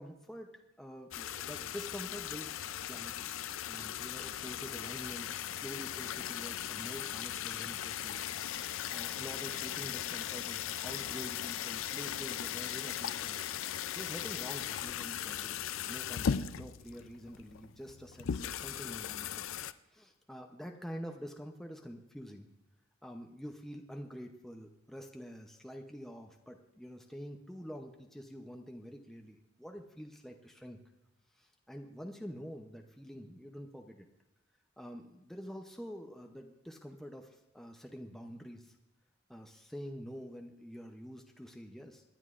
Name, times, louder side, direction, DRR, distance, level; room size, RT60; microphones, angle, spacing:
voice 1, 0.0-3.3 3.7-13.4 13.9-19.5 19.9-22.5 23.0-30.8 31.3-34.1 34.8-38.8 39.3-42.0, equal, ahead, 2 dB, 0.7 m, -47 dB
sound 1, 1.1-19.7, left 9 dB, 80° left, 0.4 m, -38 dB
25.5 x 10.5 x 2.5 m, 0.92 s
head